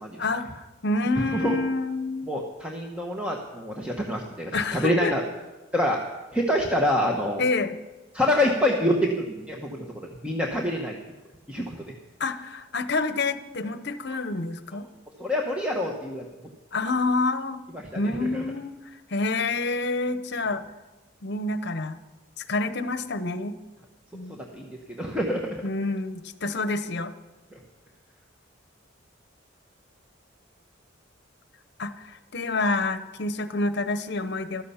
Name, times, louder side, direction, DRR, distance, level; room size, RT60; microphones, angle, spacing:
voice 1, 0.2-2.3 4.5-5.2 7.4-7.8 12.2-14.9 16.7-17.6 17.9-20.6 21.2-22.0 22.5-23.6 24.1-24.4 25.6-27.1 31.8-34.6, left 3 dB, 55° left, 11 dB, 0.9 m, -28 dB
voice 2, 1.2-1.6 2.3-5.2 5.7-6.0 6.3-7.4 8.1-11.0 11.5-11.8 15.2-16.2 17.7-18.4 24.3-25.6, left 1 dB, 5° right, 0 dB, 1.0 m, -26 dB
15.5 x 13.0 x 5.7 m, 1.1 s
head